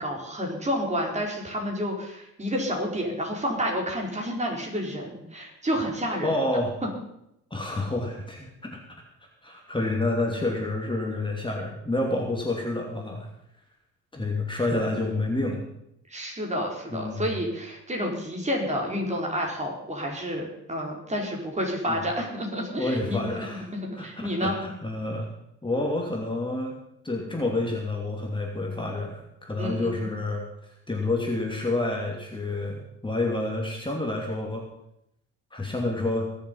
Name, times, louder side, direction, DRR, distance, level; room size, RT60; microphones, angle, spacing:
voice 1, 0.0-6.4 16.1-23.2 23.7-24.5 29.6-30.1, equal, 25° right, -1 dB, 4.5 m, -30 dB
voice 2, 6.2-6.7 7.5-8.8 9.4-13.3 14.1-15.6 16.9-17.4 21.9-22.0 22.8-23.7 23.9-25.3 25.6-26.8 27.0-30.4 30.9-34.7 35.5-36.3, left 2 dB, 15° left, 0 dB, 2.8 m, -28 dB
20.5 x 7.5 x 5.6 m, 0.79 s
cardioid pair, 90°, 30 cm